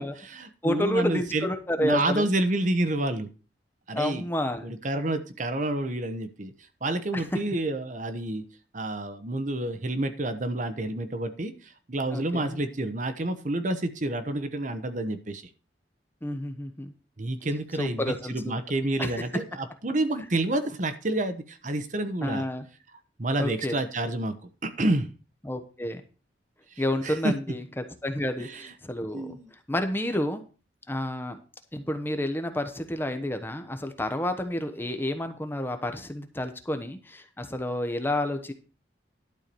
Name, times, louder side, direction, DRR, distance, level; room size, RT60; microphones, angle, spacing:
voice 1, 0.0-1.5 1.8-3.3 3.9-4.3 4.6-6.5 6.8-8.4 8.7-15.4 17.2-22.5 23.2-24.4 24.6-25.1 27.0-27.3 28.4-28.7 29.1-29.5, right 1 dB, 45° right, 9 dB, 1.1 m, -29 dB
voice 2, 0.6-2.3 3.9-4.7 7.1-7.4 12.1-12.6 16.2-16.9 17.8-18.6 19.0-19.1 22.2-22.7 23.4-23.8 25.4-26.0 26.8-29.4 29.7-30.4 30.9-31.4 31.7-38.5, left 1 dB, 10° left, 8 dB, 1.0 m, -30 dB
12.0 x 4.7 x 6.9 m, 0.35 s
head